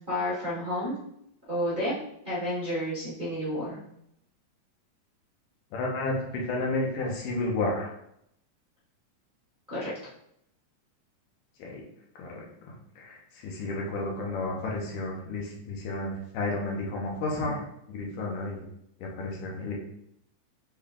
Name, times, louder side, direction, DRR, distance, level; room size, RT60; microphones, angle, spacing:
voice 1, 0.1-1.0 1.5-2.0 2.2-3.8 9.7-9.9, left 1 dB, 85° right, -10 dB, 0.4 m, -30 dB
voice 2, 5.7-7.9 11.6-11.8 12.2-17.6 17.9-18.6 19.0-19.8, left 2 dB, 90° left, -2 dB, 2.6 m, -32 dB
6.3 x 3.6 x 2.4 m, 0.74 s
omnidirectional pair, 3.7 m